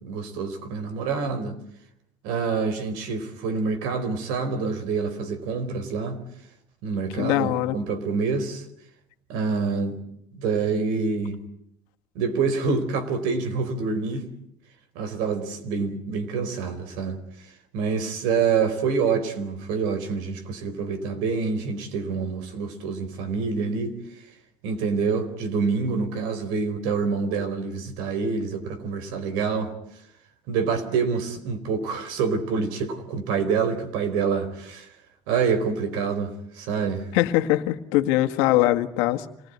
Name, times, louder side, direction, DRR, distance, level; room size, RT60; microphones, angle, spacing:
voice 1, 0.0-1.6 2.2-6.2 6.8-8.6 9.3-10.0 10.3-11.4 12.1-14.3 14.9-17.2 17.7-24.0 24.6-29.7 30.5-34.9 35.3-37.1, right 5 dB, 85° right, 4.4 m, -26 dB
voice 2, 7.2-7.8 37.1-39.3, left 15 dB, 90° left, 1.8 m, -22 dB
27.0 x 20.0 x 9.6 m
cardioid pair, 150°, 8 cm